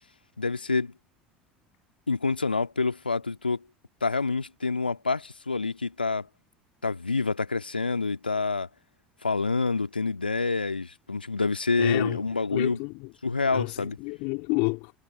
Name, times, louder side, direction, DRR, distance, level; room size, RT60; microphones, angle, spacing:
voice 1, 0.4-0.9 2.1-3.6 4.0-6.3 6.8-8.7 9.2-12.8 13.2-14.0, left 4 dB, 85° left, 2.0 m, -27 dB
voice 2, 11.8-12.2 12.5-13.1 13.5-15.0, left 32 dB, 60° left, 3.0 m, -30 dB
figure-of-eight pair, 70°, 5 cm